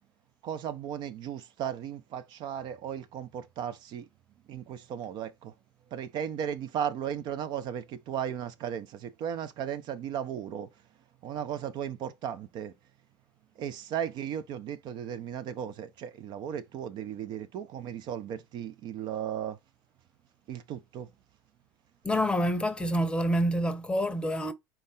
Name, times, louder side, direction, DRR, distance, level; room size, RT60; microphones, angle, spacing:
voice 1, 0.4-4.1 4.5-5.5 5.9-10.7 11.2-12.7 13.6-19.6 20.5-21.1, right 9 dB, 50° right, 0.6 m, -36 dB
voice 2, 22.0-24.5, equal, 10° left, 0.8 m, -27 dB
4.4 x 2.5 x 3.6 m
hypercardioid pair, 85°, 9 cm